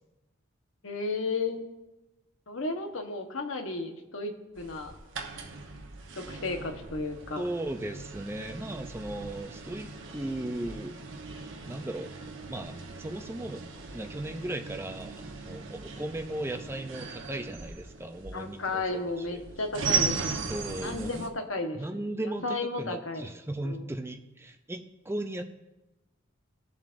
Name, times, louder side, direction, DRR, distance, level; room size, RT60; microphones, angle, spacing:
voice 1, 0.8-1.6 2.5-4.9 6.2-7.4 18.3-20.4 20.8-21.8 22.4-23.3 23.6-23.8, left 3 dB, 75° left, 4 dB, 1.2 m, -33 dB
sound 1, 4.6-21.3, right 4 dB, 65° right, 1.0 m, -38 dB
voice 2, 7.4-11.0 11.7-12.1 12.5-19.4 20.5-21.3 21.8-25.4, right 1 dB, 10° right, 6 dB, 0.5 m, -37 dB
19.0 x 7.3 x 2.6 m, 1.0 s
head